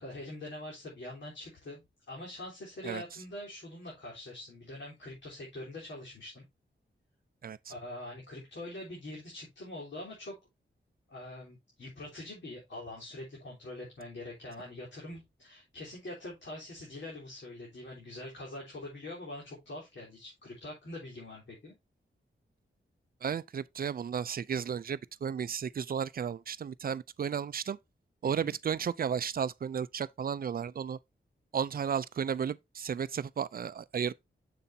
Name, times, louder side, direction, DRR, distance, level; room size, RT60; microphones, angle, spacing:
voice 1, 0.0-6.5 7.7-10.3 11.1-21.7 28.2-28.6, left 1 dB, 65° left, 3.7 m, -44 dB
voice 2, 23.2-27.8 28.2-31.0 31.5-34.1, right 7 dB, 50° right, 0.4 m, -33 dB
7.0 x 6.9 x 2.7 m
wide cardioid pair, 120°, 20 cm